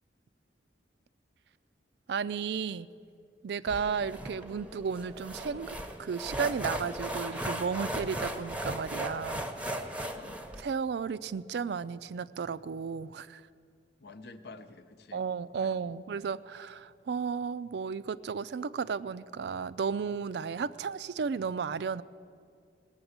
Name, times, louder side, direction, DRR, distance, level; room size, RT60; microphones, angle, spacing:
voice 1, 2.1-2.9 3.4-5.7 6.0-9.5 10.6-13.4 15.1-22.0, right 6 dB, 65° right, 16 dB, 0.4 m, -33 dB
sound 1, 3.7-10.6, right 1 dB, 10° right, 0.7 m, -37 dB
voice 2, 10.0-10.4 14.0-15.2 15.5-16.0, left 3 dB, 65° left, 8 dB, 0.8 m, -49 dB
18.0 x 6.9 x 8.0 m, 2.4 s
head